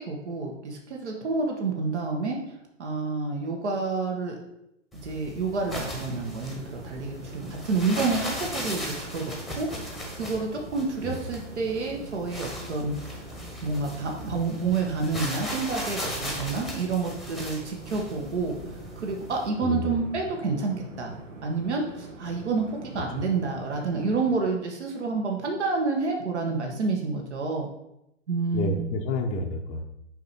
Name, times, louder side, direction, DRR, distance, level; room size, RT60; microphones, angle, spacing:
voice 1, 0.0-2.4 2.8-4.3 5.0-13.2 13.6-18.5 18.9-21.1 21.4-27.7 28.3-28.8, right 4 dB, 65° right, 1 dB, 1.5 m, -29 dB
sound 1, 4.9-19.5, left 1 dB, ahead, 1.1 m, -37 dB
sound 2, 5.6-24.4, right 3 dB, 80° right, 1.2 m, -45 dB
voice 2, 19.6-20.0 28.5-29.8, left 2 dB, 20° left, 2 dB, 0.7 m, -29 dB
6.8 x 4.7 x 4.3 m, 0.83 s
figure-of-eight pair, 125°, 38 cm